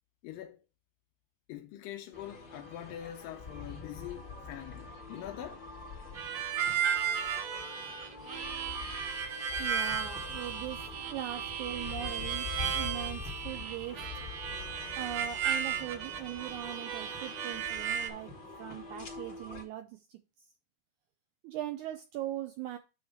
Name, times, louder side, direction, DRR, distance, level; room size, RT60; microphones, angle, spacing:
voice 1, 0.2-0.6 1.5-5.7, left 12 dB, 85° left, 2.2 m, -44 dB
sound 1, 2.1-19.6, left 4 dB, 35° left, 2.5 m, -45 dB
Harmonica, 6.2-18.1, right 8 dB, 65° right, 1.7 m, -35 dB
voice 2, 9.6-14.1 14.9-18.3 18.6-20.2 21.4-22.8, right 13 dB, 90° right, 1.7 m, -40 dB
9.2 x 3.1 x 6.4 m
omnidirectional pair, 4.2 m